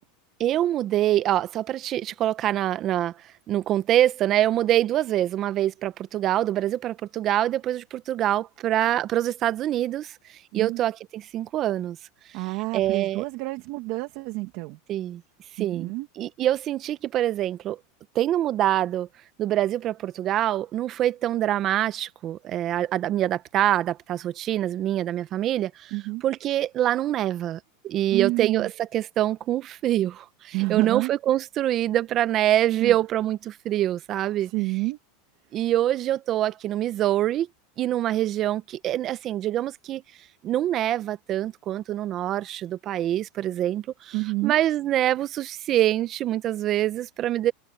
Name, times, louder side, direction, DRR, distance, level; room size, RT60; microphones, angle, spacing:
voice 1, 0.4-3.1 3.5-10.1 10.5-12.0 12.7-13.2 14.9-15.2 15.6-15.9 16.2-17.8 18.1-19.1 19.4-25.9 26.2-34.5 35.5-37.5 37.8-40.0 40.4-44.2 44.4-47.5, right 12 dB, 40° right, 0.8 m, -25 dB
voice 2, 12.3-14.8 15.6-16.1 25.9-26.2 28.1-28.7 30.5-31.1 32.8-32.9 34.4-35.0 44.1-44.6, right 22 dB, 55° right, 2.2 m, -29 dB
supercardioid pair, 125°, 0 cm